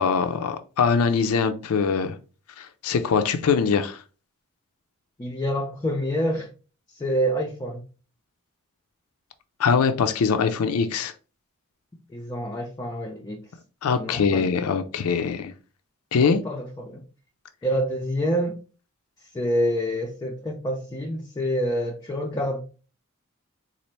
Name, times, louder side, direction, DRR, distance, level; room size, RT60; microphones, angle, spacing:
voice 1, 0.0-2.2 2.6-4.0 9.6-11.1 13.8-15.5 16.1-16.4, left 5 dB, 75° left, 0.4 m, -22 dB
voice 2, 5.2-6.5 7.0-7.8 12.1-13.4 14.0-14.5 16.2-17.0 17.6-18.6 19.3-22.6, equal, 20° left, 0.4 m, -27 dB
4.1 x 2.4 x 3.1 m
head